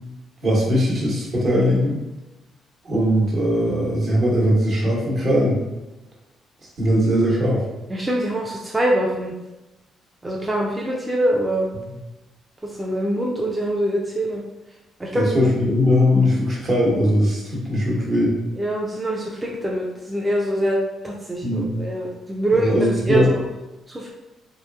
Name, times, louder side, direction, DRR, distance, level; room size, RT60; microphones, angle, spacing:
voice 1, 0.4-2.0 2.8-5.6 6.8-7.6 11.7-11.9 15.1-18.4 21.4-21.7 22.5-23.4, equal, 50° right, -4 dB, 1.0 m, -20 dB
voice 2, 7.9-9.3 10.2-11.7 12.6-14.4 15.0-15.2 18.6-23.3 23.9-24.1, right 1 dB, 15° right, -2 dB, 0.4 m, -24 dB
2.8 x 2.4 x 2.3 m, 1.0 s
cardioid pair, 90°, 0 cm